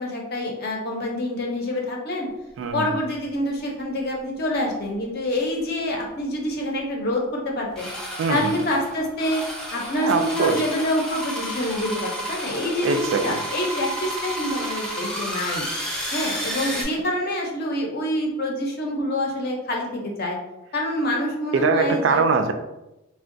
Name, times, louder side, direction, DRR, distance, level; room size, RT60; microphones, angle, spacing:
voice 1, 0.0-2.3 2.7-7.9 8.3-9.4 9.7-15.6 16.1-20.4 20.7-22.2, left 1 dB, 50° left, 0 dB, 0.6 m, -26 dB
voice 2, 2.6-2.9 8.2-8.6 10.0-10.6 12.8-13.4 21.5-22.5, right 4 dB, 65° right, 7 dB, 0.3 m, -22 dB
sound 1, 5.6-5.7 6.0-6.1 7.7-16.8, equal, 5° left, 0.5 m, -31 dB
3.4 x 2.2 x 2.5 m, 0.94 s
head